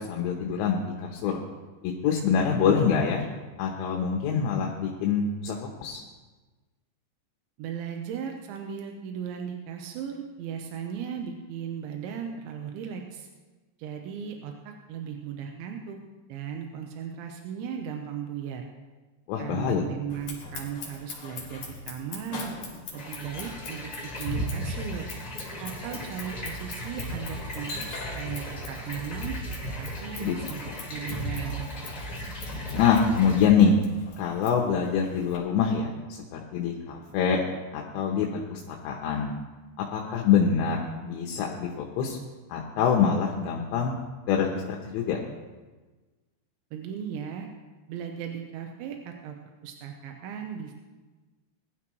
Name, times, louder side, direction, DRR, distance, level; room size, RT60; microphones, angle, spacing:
voice 1, 0.0-1.4 1.8-3.3 3.6-6.0 19.3-19.8 30.2-30.3 32.7-33.8 34.2-35.9 36.3-37.4 37.7-39.3 39.9-42.2 42.5-43.9 44.3-45.2, left 6 dB, 80° left, 0 dB, 3.3 m, -25 dB
voice 2, 7.6-13.3 13.8-16.0 16.3-18.7 19.4-22.5 22.9-23.9 24.2-25.1 25.6-29.4 29.8-30.6 30.9-31.7 46.7-47.5 47.9-49.4 49.6-50.7, right 8 dB, 90° right, 3 dB, 3.3 m, -36 dB
Scissors, 20.1-35.4, left 3 dB, 50° left, 3.9 m, -43 dB
sound 1, 23.0-33.4, equal, 25° left, 2.6 m, -36 dB
20.5 x 12.0 x 3.1 m, 1.3 s
omnidirectional pair, 5.2 m